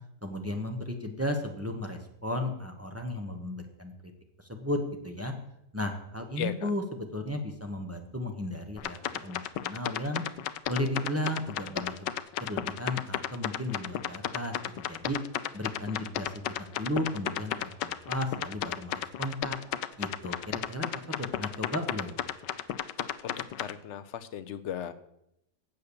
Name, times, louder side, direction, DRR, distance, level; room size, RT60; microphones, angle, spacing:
voice 1, 0.2-3.9 4.4-5.3 5.7-10.2 10.7-12.1 12.4-15.2 15.5-19.6 20.0-22.2, left 1 dB, 10° right, 3 dB, 0.8 m, -34 dB
sound 1, 8.8-23.7, left 11 dB, 80° left, 1.2 m, -33 dB
voice 2, 23.2-24.9, left 9 dB, 60° left, 12 dB, 0.7 m, -36 dB
8.2 x 8.0 x 6.9 m, 0.79 s
omnidirectional pair, 1.9 m